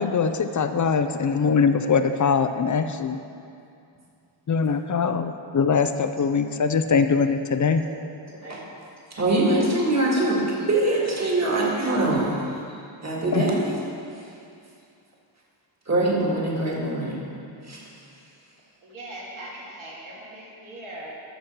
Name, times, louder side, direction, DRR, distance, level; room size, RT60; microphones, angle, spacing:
voice 1, 0.0-3.2 4.5-7.8 13.3-13.4, left 5 dB, 40° left, 9 dB, 0.5 m, -22 dB
voice 2, 9.1-12.6 13.0-13.8 15.9-17.2 17.7-17.8, right 2 dB, 35° right, -4 dB, 2.0 m, -23 dB
voice 3, 18.8-21.2, right 1 dB, 75° right, -6 dB, 2.5 m, -40 dB
13.5 x 6.3 x 4.4 m, 2.5 s
wide cardioid pair, 130°, 48 cm